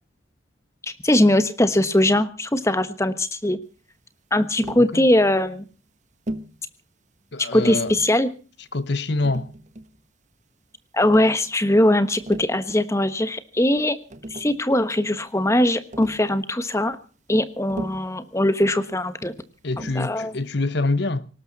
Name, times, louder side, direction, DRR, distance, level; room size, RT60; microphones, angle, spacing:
voice 1, 0.9-3.6 4.3-5.6 7.5-8.3 10.9-14.0 14.3-17.0 17.3-19.3 19.9-20.3, left 1 dB, 15° left, 1.3 m, -20 dB
Tap, 4.6-4.9 6.3-6.6 7.6-8.2 9.2-10.0 11.0-11.4 12.1-12.6 13.7-13.8 14.1-14.6 15.9-16.3 17.7-18.2 19.8-20.1, right 1 dB, 35° right, 1.3 m, -36 dB
voice 2, 7.3-7.9 8.7-9.5 19.6-21.3, left 2 dB, 55° left, 1.0 m, -25 dB
19.0 x 18.0 x 4.1 m
head